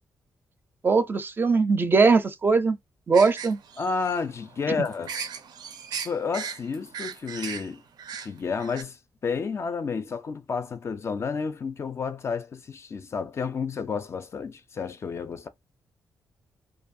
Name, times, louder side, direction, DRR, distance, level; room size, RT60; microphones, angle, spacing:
voice 1, 0.8-2.8 3.1-3.6, right 4 dB, 30° right, 0.4 m, -20 dB
sound 1, 3.1-8.8, right 7 dB, 90° right, 0.5 m, -38 dB
voice 2, 3.8-5.1 5.9-7.8 8.2-9.0 9.2-15.5, left 5 dB, 40° left, 0.4 m, -31 dB
2.5 x 2.3 x 2.6 m
wide cardioid pair, 130°, 7 cm